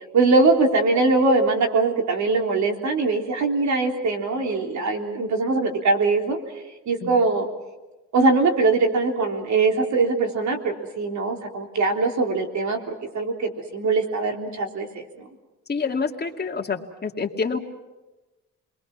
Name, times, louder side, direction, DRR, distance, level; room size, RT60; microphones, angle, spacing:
voice 1, 0.1-6.4 6.9-7.5 8.1-14.9 15.2-15.3, right 3 dB, 70° right, 3 dB, 3.6 m, -22 dB
voice 2, 15.7-17.6, left 5 dB, 35° left, 2 dB, 2.4 m, -27 dB
29.5 x 22.0 x 6.1 m, 1.1 s
cardioid pair, 90°, 30 cm